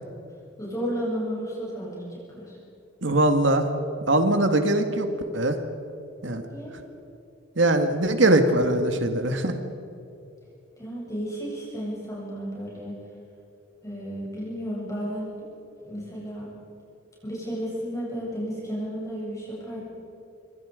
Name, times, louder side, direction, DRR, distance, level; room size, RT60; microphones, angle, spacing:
voice 1, 0.6-2.6 6.4-6.7 10.8-13.0 13.8-15.3 15.8-16.5 17.2-19.8, equal, 15° left, -6 dB, 8.0 m, -33 dB
voice 2, 3.0-3.7 4.1-5.1 5.3-5.6 6.2-6.4 7.6-9.5, right 1 dB, 65° right, 7 dB, 2.0 m, -21 dB
28.0 x 24.0 x 5.2 m, 2.8 s
head